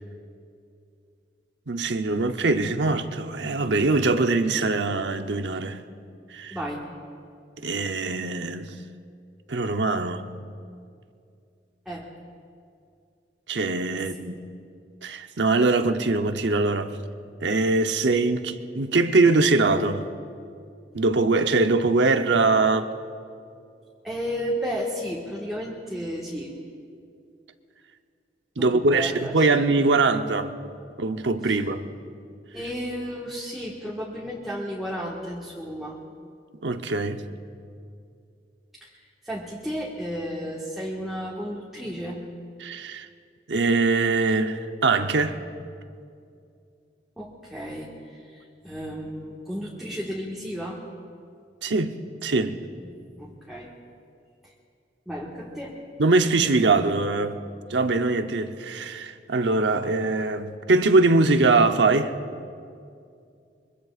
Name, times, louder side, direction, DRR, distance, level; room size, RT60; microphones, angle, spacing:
voice 1, 1.7-5.8 6.3-6.6 7.6-8.7 9.5-10.3 13.5-14.4 15.0-17.0 17.4-20.1 20.9-22.9 28.6-30.6 31.0-31.8 36.6-37.2 42.6-43.1 43.5-45.4 51.6-52.6 56.0-57.4 57.7-62.1, right 3 dB, 90° right, 0.9 m, -22 dB
voice 2, 6.5-6.8 11.9-12.1 13.9-14.0 24.0-26.5 28.6-29.3 32.5-36.0 38.8-38.9 39.2-42.2 47.2-48.2 48.6-50.8 52.8-52.9 53.2-53.7 55.1-55.7, equal, ahead, 1.7 m, -33 dB
24.5 x 23.5 x 2.5 m
head